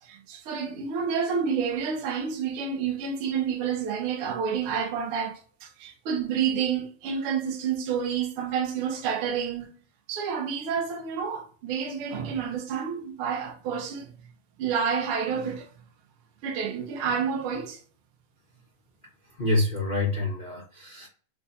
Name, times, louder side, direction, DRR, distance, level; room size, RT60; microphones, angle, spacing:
voice 1, 0.0-9.7 10.1-14.1 14.6-15.7 16.4-17.8, right 7 dB, 75° right, 1.2 m, -29 dB
voice 2, 19.4-21.1, left 2 dB, 35° left, 0.7 m, -27 dB
5.0 x 3.5 x 2.6 m
omnidirectional pair, 3.9 m